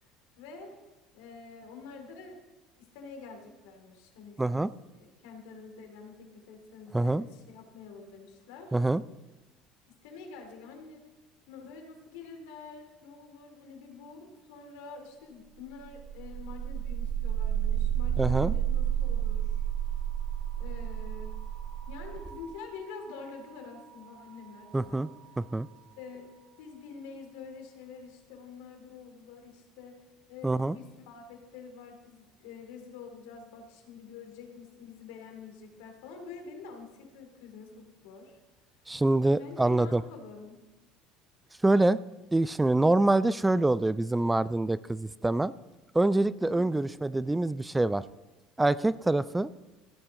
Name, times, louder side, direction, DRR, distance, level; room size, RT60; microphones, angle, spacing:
voice 1, 0.4-0.7 1.1-2.4 2.8-4.7 5.0-8.7 10.0-11.0 11.5-19.6 20.6-21.4 21.9-25.1 25.9-26.3 26.6-30.0 30.3-38.4 39.4-40.6 46.5-46.8, left 5 dB, 80° left, 3 dB, 2.6 m, -47 dB
voice 2, 4.4-4.7 6.9-7.2 8.7-9.0 18.2-18.5 24.7-25.1 25.4-25.7 30.4-30.8 38.9-40.0 41.6-42.0 42.3-45.5 45.9-48.0 48.6-49.5, right 2 dB, 10° right, 17 dB, 0.3 m, -25 dB
sound 1, 15.7-25.7, right 9 dB, 40° right, 3.5 m, -32 dB
16.0 x 8.6 x 3.7 m, 1.1 s
supercardioid pair, 95°, 0 cm